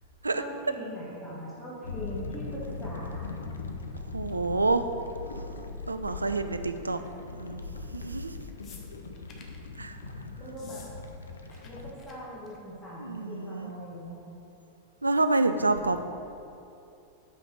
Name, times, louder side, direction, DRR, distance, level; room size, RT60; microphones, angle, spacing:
voice 1, 0.3-3.4 7.0-7.1 10.4-10.8 11.5-14.2, equal, 5° left, -9 dB, 1.8 m, -41 dB
sound 1, 1.8-11.9, left 4 dB, 70° left, 0.5 m, -40 dB
voice 2, 4.1-4.8 5.9-7.0 7.3-7.6 7.9-8.3 9.8-10.0 13.0-13.7 15.0-16.0, right 3 dB, 80° right, 9 dB, 0.3 m, -27 dB
sound 2, 8.6-9.6 10.5-10.9 11.2-11.7 12.0-12.1 12.4-12.7 13.7-13.8, left 5 dB, 30° left, 0.9 m, -51 dB
5.6 x 5.2 x 6.1 m, 2.7 s
figure-of-eight pair, 90°, 0 cm